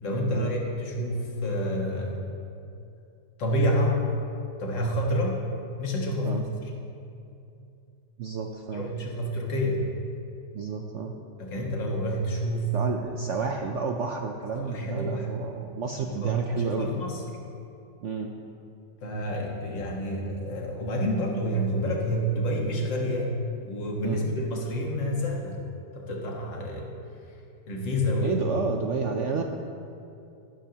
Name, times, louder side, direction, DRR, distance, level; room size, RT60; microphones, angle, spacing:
voice 1, 0.0-2.2 3.4-4.1 4.6-5.4 5.8-6.7 8.7-9.8 11.4-12.7 13.3-13.5 14.5-15.3 15.9-17.2 19.0-23.3 23.6-25.6 25.9-26.9 27.7-28.4, equal, 85° left, -1 dB, 2.2 m, -28 dB
voice 2, 8.2-8.9 10.5-11.1 12.7-17.0 18.0-18.3 24.0-24.2 28.2-29.4, right 5 dB, 70° right, 3 dB, 0.7 m, -31 dB
14.0 x 12.0 x 2.9 m, 2.6 s
omnidirectional pair, 1.9 m